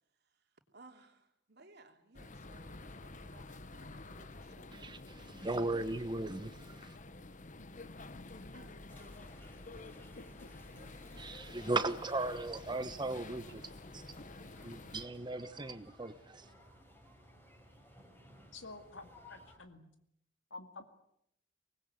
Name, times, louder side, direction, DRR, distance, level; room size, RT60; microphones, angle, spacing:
voice 1, 0.7-5.0 8.5-9.3 10.7-11.9, right 2 dB, 55° right, 3.1 m, -61 dB
sound 1, 2.1-15.1, left 2 dB, 40° left, 1.1 m, -50 dB
voice 2, 4.7-7.0 11.2-13.6 13.9-14.1 14.6-16.5, right 2 dB, 25° right, 1.1 m, -37 dB
sound 2, 8.9-19.6, equal, 10° left, 5.9 m, -59 dB
voice 3, 10.2-10.5 18.5-19.9 20.5-20.8, left 3 dB, 75° left, 2.2 m, -50 dB
25.0 x 20.0 x 9.2 m
head